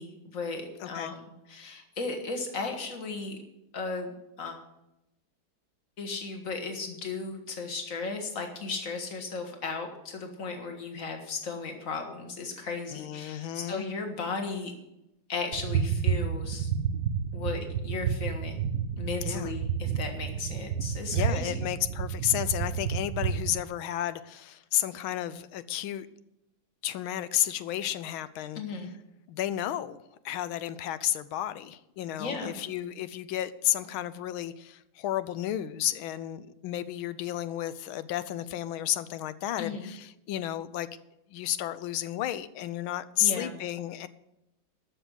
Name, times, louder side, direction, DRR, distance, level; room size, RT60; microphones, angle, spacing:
voice 1, 0.0-3.4 3.7-4.6 6.0-14.7 15.3-16.7 17.3-18.6 19.0-21.7 28.6-28.9 32.2-32.6 39.6-39.9 43.2-43.6, left 4 dB, 45° left, 4 dB, 2.0 m, -36 dB
voice 2, 0.8-1.1 12.9-13.9 19.2-19.5 21.1-26.1 26.8-28.6 29.3-30.0 30.2-40.9 41.3-44.1, left 12 dB, 90° left, 14 dB, 1.5 m, -32 dB
sound 1, 15.5-23.6, right 7 dB, 65° right, 1.1 m, -30 dB
12.5 x 6.7 x 8.0 m, 0.88 s
omnidirectional pair, 2.2 m